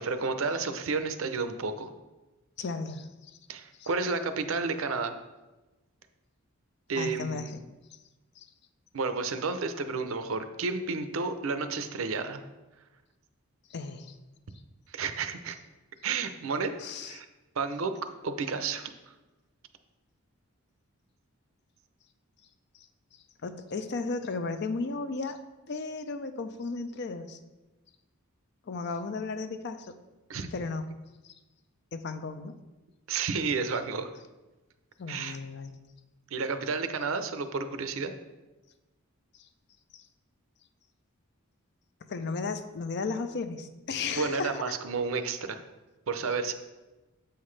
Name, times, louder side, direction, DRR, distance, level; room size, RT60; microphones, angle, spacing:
voice 1, 0.0-1.9 3.5-5.1 6.9-7.6 8.9-12.4 14.9-15.6 16.0-16.7 17.0-17.3 17.6-17.9 18.2-18.9 30.3-30.5 33.1-34.1 35.1-35.4 36.3-38.1 44.2-45.6 46.1-46.5, right 4 dB, 65° right, 9 dB, 0.6 m, -31 dB
voice 2, 2.6-3.4 3.8-3.9 7.0-7.6 8.4-8.5 13.7-14.2 16.8-17.2 22.8-22.9 23.4-25.4 25.7-27.4 28.7-30.0 30.5-30.8 31.9-32.6 35.0-35.8 39.9-40.1 42.1-44.8, left 4 dB, 50° left, 10 dB, 0.5 m, -35 dB
7.9 x 5.7 x 3.2 m, 1.1 s
head